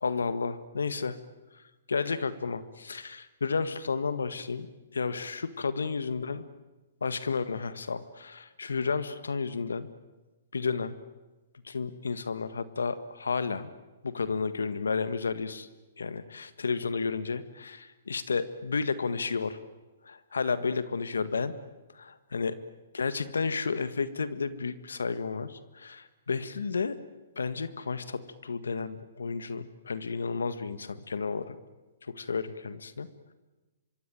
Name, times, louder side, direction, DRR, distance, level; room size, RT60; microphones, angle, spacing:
voice 1, 0.0-1.2 1.9-4.7 4.9-6.4 7.0-9.9 10.5-11.0 11.6-13.7 14.0-15.7 16.0-19.6 20.1-21.5 21.9-22.5 22.9-27.0 27.4-31.6 32.1-33.1, left 5 dB, 85° left, 13 dB, 1.6 m, -32 dB
25.0 x 24.0 x 9.2 m, 1.1 s
hypercardioid pair, 130°, 0 cm